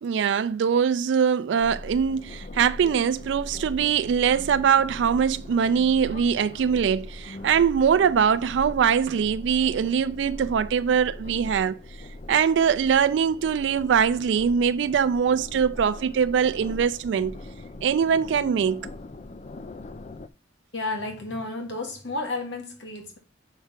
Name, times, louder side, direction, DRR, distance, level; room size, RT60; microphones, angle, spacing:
voice 1, 0.0-11.8 12.3-17.4 17.8-18.9, right 7 dB, 75° right, 0.3 m, -22 dB
sound 1, 1.6-20.3, left 2 dB, 40° left, 0.5 m, -40 dB
voice 2, 20.7-23.2, left 2 dB, 75° left, 2.2 m, -32 dB
6.9 x 5.6 x 5.8 m
head